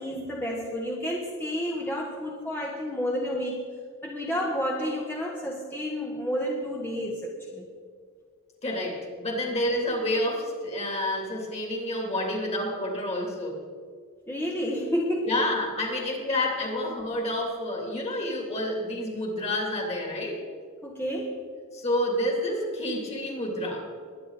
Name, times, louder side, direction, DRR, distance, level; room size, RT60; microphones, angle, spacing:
voice 1, 0.0-3.6 4.0-7.7 14.3-15.5 20.8-21.4, equal, 10° left, -1 dB, 1.2 m, -30 dB
voice 2, 8.6-13.6 15.2-20.4 21.7-23.9, left 1 dB, 30° left, 0 dB, 3.0 m, -29 dB
22.0 x 10.0 x 4.1 m, 2.1 s
head